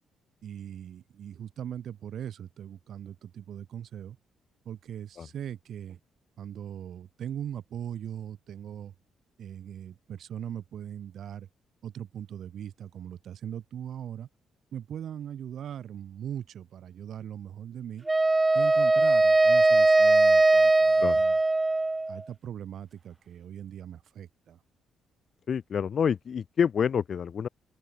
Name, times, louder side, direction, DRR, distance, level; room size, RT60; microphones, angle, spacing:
voice 1, 0.4-4.2 4.6-6.0 6.4-8.9 9.4-11.5 11.8-14.3 14.7-18.1 18.5-21.4 22.1-24.6, right 9 dB, 65° right, 1.2 m, -40 dB
Wind instrument woodwind instrument, 18.1-22.2, right 2 dB, 15° right, 0.3 m, -20 dB
voice 2, 25.5-27.5, left 7 dB, 50° left, 0.4 m, -27 dB
open air
cardioid pair, 90°, 0 cm